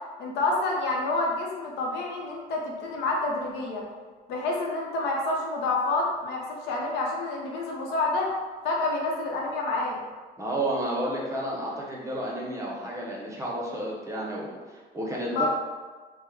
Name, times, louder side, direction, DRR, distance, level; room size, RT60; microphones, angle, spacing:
voice 1, 0.2-3.8 4.3-8.3 8.6-10.0 15.3-15.5, left 2 dB, 80° left, -2 dB, 0.7 m, -28 dB
voice 2, 10.4-15.5, right 1 dB, 20° right, -4 dB, 0.7 m, -31 dB
3.1 x 2.1 x 3.4 m, 1.4 s
cardioid pair, 110°, 17 cm